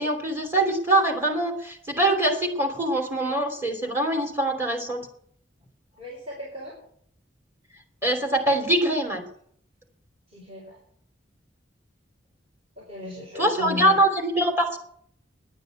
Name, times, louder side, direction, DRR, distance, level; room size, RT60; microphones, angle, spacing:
voice 1, 0.0-5.1 8.0-9.3 13.3-14.8, right 1 dB, 15° right, 2 dB, 3.0 m, -23 dB
voice 2, 6.0-6.7 10.3-10.8 12.8-13.9, left 2 dB, 35° right, -5 dB, 5.0 m, -36 dB
10.5 x 9.2 x 9.2 m, 0.63 s
head